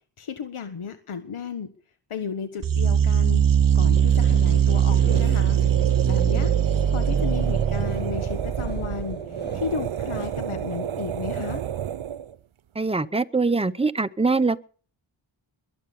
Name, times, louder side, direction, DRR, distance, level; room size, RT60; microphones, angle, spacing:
voice 1, 0.2-1.7 2.1-3.4 3.7-5.6 6.0-6.5 6.9-9.2 9.5-11.6, left 6 dB, 90° left, 1.7 m, -33 dB
sound 1, 2.6-9.1, right 9 dB, 45° right, 0.7 m, -21 dB
sound 2, 3.9-10.3, left 3 dB, 20° left, 1.7 m, -41 dB
sound 3, 5.0-12.4, right 10 dB, 75° right, 0.9 m, -31 dB
voice 2, 12.7-14.6, right 3 dB, 10° right, 0.8 m, -23 dB
22.0 x 8.9 x 7.0 m
wide cardioid pair, 100°, 48 cm